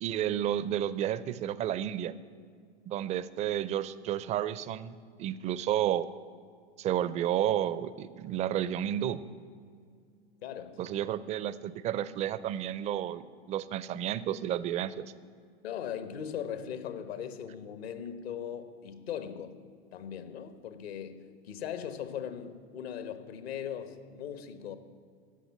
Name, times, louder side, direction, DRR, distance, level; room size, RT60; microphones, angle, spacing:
voice 1, 0.0-2.1 2.9-6.1 6.8-9.2 10.8-15.1, right 11 dB, 20° right, 0.4 m, -31 dB
voice 2, 10.4-10.8 15.6-19.6 19.9-24.8, left 8 dB, 70° left, 1.2 m, -39 dB
15.0 x 5.7 x 9.3 m
hypercardioid pair, 105°, 32 cm